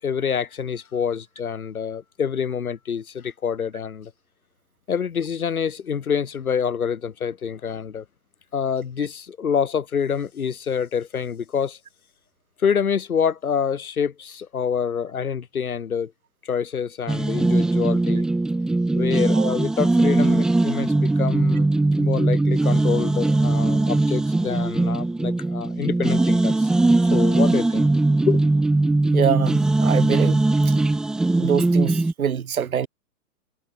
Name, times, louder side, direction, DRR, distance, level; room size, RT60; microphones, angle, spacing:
voice 1, 0.0-4.1 4.9-8.0 8.5-11.8 12.6-16.1 16.4-18.3 18.9-21.7 22.0-26.7 27.1-27.9 28.2-28.4, left 7 dB, 85° left, 6.1 m, -26 dB
sound 1, 17.1-32.1, right 2 dB, ahead, 1.7 m, -20 dB
voice 2, 29.1-30.7 31.4-32.9, right 8 dB, 80° right, 2.5 m, -25 dB
hypercardioid pair, 180°, 42 cm